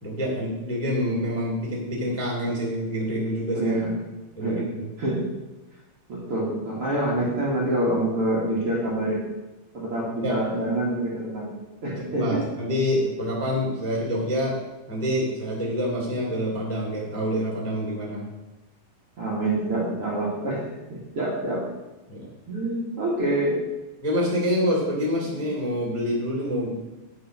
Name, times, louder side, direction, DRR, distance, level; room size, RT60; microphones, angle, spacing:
voice 1, 0.0-3.7 4.4-4.6 10.2-10.4 12.0-14.6 14.9-18.2 22.1-22.3 24.0-26.8, equal, 5° left, -4 dB, 2.2 m, -26 dB
voice 2, 3.5-4.0 4.4-4.7 5.0-5.3 6.1-9.3 9.7-11.6 11.8-12.4 19.2-20.6 20.9-21.7 22.5-23.6 25.2-25.3, right 1 dB, 45° right, -6 dB, 2.4 m, -26 dB
9.9 x 6.4 x 6.3 m, 1.0 s
omnidirectional pair, 4.3 m